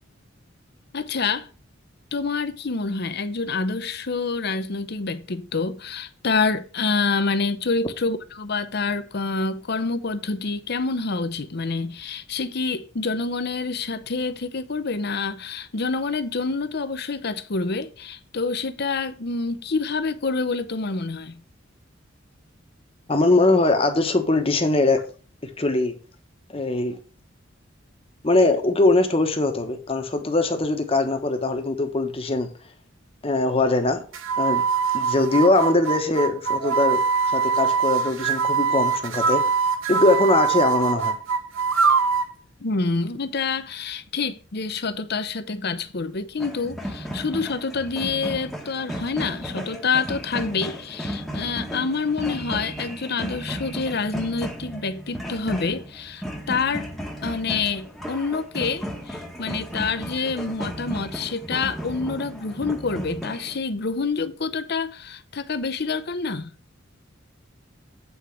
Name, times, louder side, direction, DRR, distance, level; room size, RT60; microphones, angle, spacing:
voice 1, 0.9-1.5 2.1-21.4 42.6-56.9 57.2-66.5, left 4 dB, 55° left, 0.8 m, -27 dB
voice 2, 23.1-25.0 25.6-25.9 26.5-27.0 28.2-32.5 33.2-34.0 34.4-34.6 34.9-37.0 37.3-39.4 39.9-41.1, left 2 dB, 30° left, 1.2 m, -21 dB
sound 1, 34.1-42.3, right 5 dB, 85° right, 0.9 m, -23 dB
sound 2, 46.4-63.6, equal, ahead, 1.3 m, -34 dB
8.7 x 4.6 x 6.0 m
head